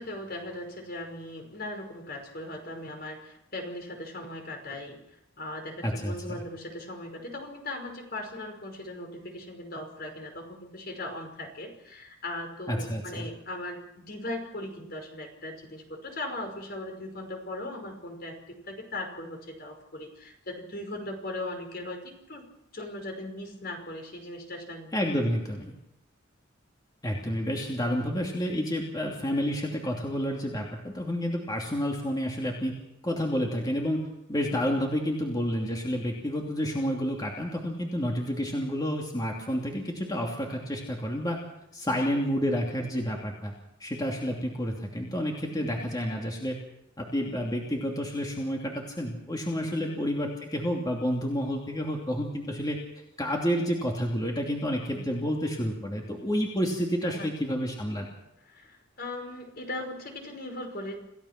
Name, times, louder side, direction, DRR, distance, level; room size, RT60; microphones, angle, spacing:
voice 1, 0.0-5.0 5.4-22.5 22.7-25.0 41.9-42.0 45.5-45.8 49.7-50.0 54.9-55.1 56.7-57.3 58.5-61.0, left 1 dB, 55° left, 4 dB, 5.4 m, -39 dB
voice 2, 5.8-6.4 12.7-13.3 24.9-25.7 27.0-32.7 33.0-41.4 41.7-43.5 43.8-46.6 47.0-52.8 53.2-58.1, equal, 20° left, 0 dB, 2.9 m, -30 dB
27.5 x 16.5 x 6.0 m, 0.81 s
head